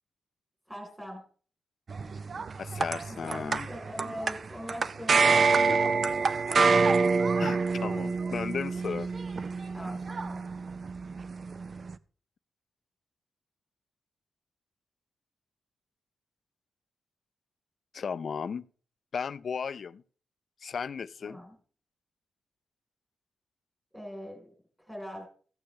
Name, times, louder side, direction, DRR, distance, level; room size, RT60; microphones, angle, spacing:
voice 1, 0.7-1.2 3.1-6.2 9.7-10.4 21.2-21.5 23.9-24.5 24.9-25.3, equal, 5° right, 3.7 m, -41 dB
sound 1, 1.9-11.9, right 4 dB, 45° right, 0.4 m, -27 dB
voice 2, 2.6-3.7 5.7-5.8 7.4-9.1 17.9-18.6 19.1-20.0 20.6-21.4, left 6 dB, 55° left, 0.4 m, -35 dB
15.5 x 8.5 x 3.2 m
wide cardioid pair, 115°, 0 cm